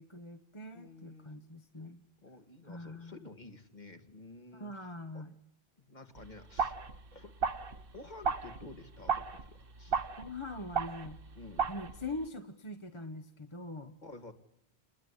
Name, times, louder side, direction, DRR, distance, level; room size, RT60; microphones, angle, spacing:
voice 1, 0.0-2.0 2.6-3.2 4.5-5.3 10.1-11.2 11.7-14.0, left 2 dB, 30° left, 8 dB, 1.2 m, -43 dB
voice 2, 0.7-1.3 2.2-4.9 5.1-5.2 5.8-6.8 7.1-7.3 7.9-10.0 11.4-11.7 14.0-14.3, left 2 dB, 45° left, 7 dB, 2.4 m, -51 dB
sound 1, 6.2-12.3, right 6 dB, 60° right, 1.4 m, -36 dB
29.0 x 21.0 x 10.0 m, 0.77 s
omnidirectional pair, 1.1 m